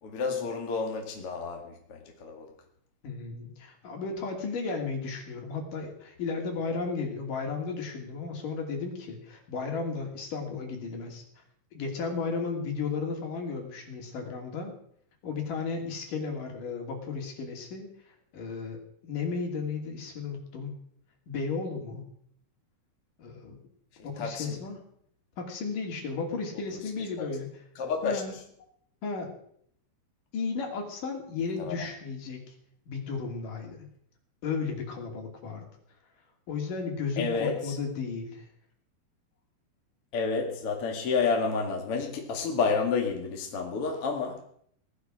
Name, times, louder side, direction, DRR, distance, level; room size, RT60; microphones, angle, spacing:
voice 1, 0.0-2.5 24.0-24.6 26.5-26.6 27.2-27.3 27.8-28.4 31.6-31.9 37.2-37.8 40.1-44.4, left 5 dB, 45° left, 1 dB, 2.8 m, -30 dB
voice 2, 3.0-11.4 11.7-14.7 15.2-18.8 19.1-20.8 21.3-22.0 23.2-23.6 24.0-24.8 25.4-27.5 28.0-28.3 29.0-29.3 30.3-32.4 32.9-33.8 34.4-35.7 36.5-38.5, left 4 dB, 65° left, 2 dB, 4.3 m, -34 dB
18.5 x 12.0 x 6.3 m, 0.65 s
omnidirectional pair, 4.2 m